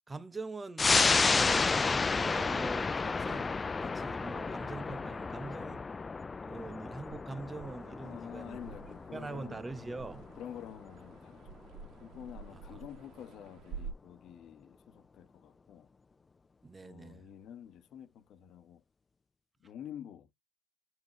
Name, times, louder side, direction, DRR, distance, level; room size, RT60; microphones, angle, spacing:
voice 1, 0.1-3.5 3.8-5.8 6.4-8.6 9.1-10.3 12.5-12.6 16.6-17.3, right 3 dB, 15° right, 1.1 m, -43 dB
sound 1, 0.8-11.8 12.1-12.2, left 4 dB, 20° left, 0.4 m, -31 dB
sound 2, 7.0-13.9, right 5 dB, 55° right, 2.1 m, -49 dB
voice 2, 8.0-9.6 10.4-11.5 12.0-15.9 16.8-18.8 19.6-20.3, left 9 dB, 50° left, 1.6 m, -48 dB
8.2 x 4.9 x 3.3 m
supercardioid pair, 95°, 0 cm